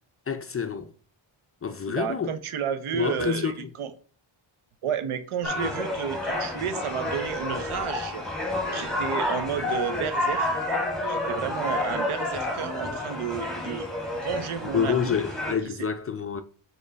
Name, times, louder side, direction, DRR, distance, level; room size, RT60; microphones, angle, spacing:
voice 1, 0.3-0.9 1.6-2.3 2.9-3.7 14.7-16.4, left 7 dB, 30° left, 0.4 m, -28 dB
voice 2, 1.9-3.9 4.8-8.3 8.7-10.5 11.0-13.9 14.2-15.2, right 7 dB, 85° right, 0.8 m, -31 dB
sound 1, 5.4-15.5, left 1 dB, ahead, 1.5 m, -30 dB
5.4 x 4.6 x 3.9 m
wide cardioid pair, 155°, 49 cm